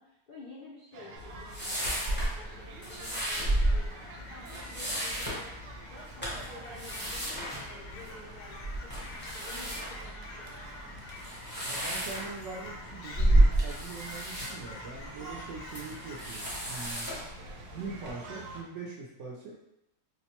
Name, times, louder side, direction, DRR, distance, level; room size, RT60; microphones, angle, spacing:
voice 1, 0.0-5.5 5.9-10.5, left 2 dB, 60° left, -7 dB, 0.5 m, -51 dB
sound 1, 0.9-18.6, right 3 dB, 80° right, 1.1 m, -49 dB
sound 2, 1.2-18.1, right 1 dB, 10° left, 0.5 m, -32 dB
Fowl / Chirp tweet, 1.5-16.2, left 2 dB, 85° left, 1.2 m, -48 dB
voice 2, 11.6-17.1 17.7-19.6, right 4 dB, 65° right, -3 dB, 0.8 m, -42 dB
4.3 x 2.1 x 2.9 m, 0.86 s
omnidirectional pair, 1.6 m